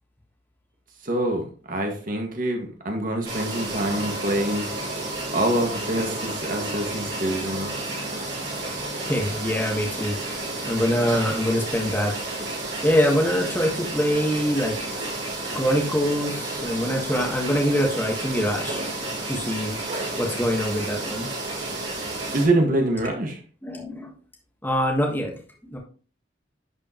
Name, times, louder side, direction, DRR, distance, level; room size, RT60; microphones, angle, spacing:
voice 1, 1.0-4.7 5.3-7.7 22.3-23.4, right 1 dB, 45° right, 2 dB, 1.8 m, -25 dB
sound 1, 3.2-22.5, right 2 dB, 70° right, 4.4 m, -31 dB
voice 2, 9.0-10.1 10.6-12.1 12.8-14.8 15.5-18.8 19.3-19.8 20.2-21.3 23.6-24.1 24.6-25.4 25.6-25.8, equal, 10° left, 0 dB, 1.4 m, -24 dB
10.5 x 4.8 x 3.0 m, 0.40 s
head